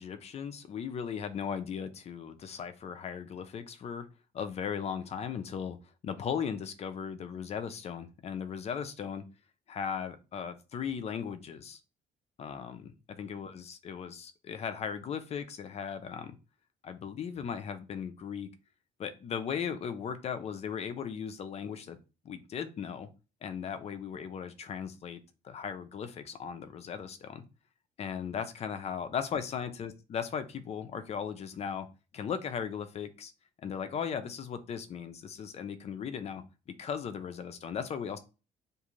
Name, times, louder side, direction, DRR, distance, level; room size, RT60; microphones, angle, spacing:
voice 1, 0.0-4.1 4.3-5.8 6.0-9.2 9.7-11.8 12.4-16.3 16.8-18.5 19.0-22.0 22.2-23.1 23.4-25.2 25.4-27.4 28.0-31.9 32.1-33.3 33.6-36.4 36.8-38.2, left 7 dB, 40° left, 0.4 m, -37 dB
2.5 x 2.4 x 3.0 m
cardioid pair, 110°, 17 cm